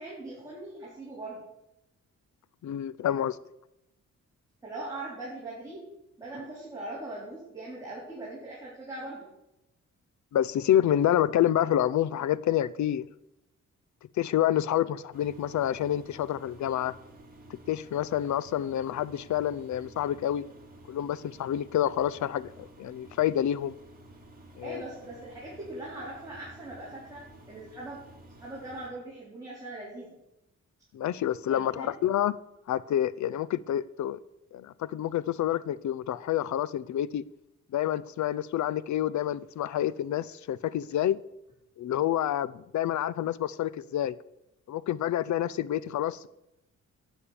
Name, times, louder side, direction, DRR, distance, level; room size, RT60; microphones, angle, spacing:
voice 1, 0.0-1.4 4.6-5.9 6.2-9.3 24.6-28.0 28.4-30.2 31.5-31.9, right 2 dB, 10° right, 4.5 m, -41 dB
voice 2, 2.6-3.4 10.3-13.1 14.2-17.0 17.7-20.4 20.9-23.7 24.6-24.8 30.9-32.3 32.7-34.2 34.5-37.2 37.7-41.2 41.8-44.2 44.7-46.3, left 11 dB, 70° left, 0.6 m, -28 dB
Engine, 15.1-28.9, right 1 dB, 30° right, 3.1 m, -52 dB
11.5 x 9.1 x 6.9 m
cardioid pair, 120°, 30 cm